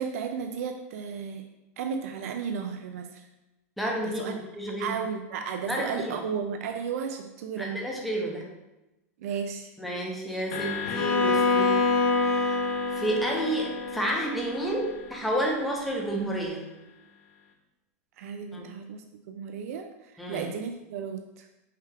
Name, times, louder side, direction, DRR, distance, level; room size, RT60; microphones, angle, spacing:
voice 1, 0.0-1.5 1.8-3.3 4.0-4.3 4.8-7.8 9.2-9.7 18.2-21.5, right 6 dB, 75° right, 6 dB, 0.4 m, -34 dB
voice 2, 3.8-5.0 5.6-6.2 7.6-8.5 9.8-11.8 12.2-12.6 12.9-16.7 18.5-18.6 20.2-20.5, right 1 dB, ahead, -3 dB, 0.7 m, -30 dB
sound 1, 10.5-16.9, left 7 dB, 55° left, 0.7 m, -39 dB
Bowed string instrument, 10.9-14.9, left 3 dB, 70° left, 1.3 m, -26 dB
5.6 x 2.4 x 3.4 m, 0.99 s
supercardioid pair, 150°, 8 cm